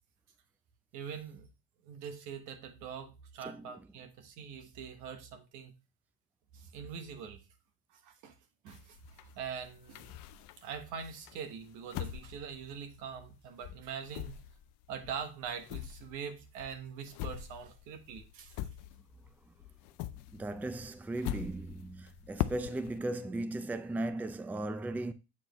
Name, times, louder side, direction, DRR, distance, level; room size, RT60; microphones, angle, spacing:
voice 1, 0.9-1.5 1.8-5.7 6.5-7.4 8.0-8.3 8.6-9.0 9.3-10.2 10.6-14.4 14.9-18.5, right 7 dB, 85° right, 1.2 m, -43 dB
voice 2, 3.4-3.7 20.3-25.1, right 2 dB, 5° right, 0.4 m, -37 dB
sound 1, 8.7-10.8 11.3-13.4 13.6-19.3 19.6-23.0, left 13 dB, 80° left, 0.5 m, -42 dB
7.5 x 4.4 x 3.0 m
cardioid pair, 110°, 29 cm